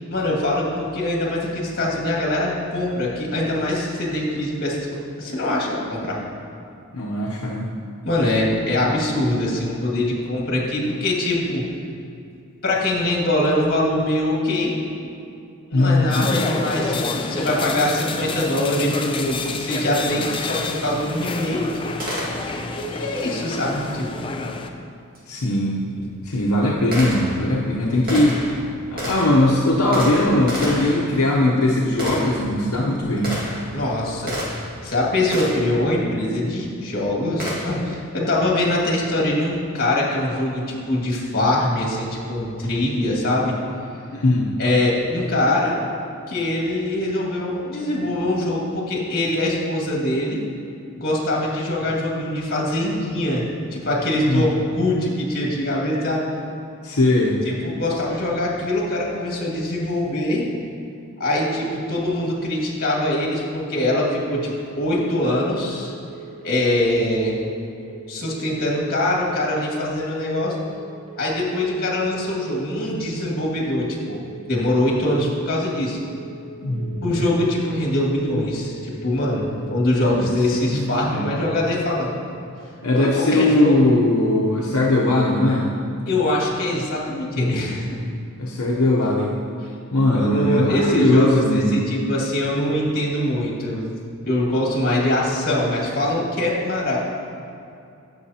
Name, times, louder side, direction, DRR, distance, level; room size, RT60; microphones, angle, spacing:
voice 1, 0.1-4.9 5.2-6.2 8.0-11.6 12.6-14.7 15.7-21.9 22.7-24.2 33.7-43.6 44.6-45.8 46.3-50.4 50.9-53.4 53.7-56.3 57.4-60.5 61.2-65.9 66.4-67.4 68.1-70.6 71.2-74.2 74.5-76.0 77.0-82.1 82.9-83.8 86.1-87.8 90.1-93.9 94.2-97.0, left 1 dB, 45° left, -3 dB, 2.1 m, -23 dB
voice 2, 6.9-7.7 15.7-16.3 25.3-25.8 26.2-28.5 29.0-33.3 44.1-44.5 54.3-54.5 56.8-57.4 76.6-77.2 80.1-80.3 80.6-81.2 82.8-85.7 87.3-87.8 88.4-89.3 89.9-91.8, left 1 dB, 75° left, -4 dB, 0.8 m, -19 dB
sound 1, 16.1-24.7, left 3 dB, 25° left, 0.5 m, -29 dB
Gunshot gunfire, 22.0-22.8 25.1-25.2 26.0-34.8 35.3-35.8 37.4-37.9, equal, 45° right, 2.0 m, -31 dB
sound 2, 65.8-65.9 66.1-66.5 66.7-67.1 67.9-68.3 68.6-69.0 69.2-69.6 70.4-70.8 71.1-71.5 71.7-72.1 72.9-73.3 73.6-74.0 74.2-74.6 75.4-75.8 76.1-76.5 76.7-77.1 77.9-78.3 78.6-79.0 79.2-79.6, right 6 dB, 25° right, 1.2 m, -42 dB
15.0 x 6.4 x 2.9 m, 2.6 s
head